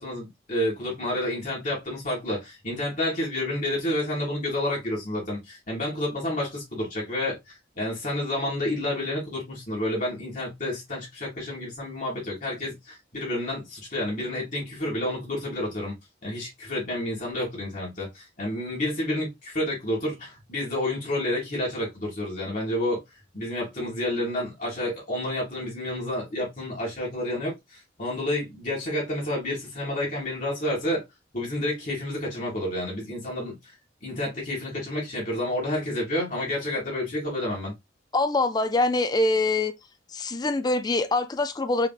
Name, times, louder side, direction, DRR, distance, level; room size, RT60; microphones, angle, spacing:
voice 1, 0.0-7.4 7.8-15.9 16.2-23.0 23.3-31.0 31.3-33.6 34.0-37.7, left 1 dB, 45° left, 2.2 m, -30 dB
voice 2, 38.1-39.7 40.1-41.9, left 2 dB, 20° left, 0.4 m, -24 dB
4.9 x 3.4 x 2.3 m
head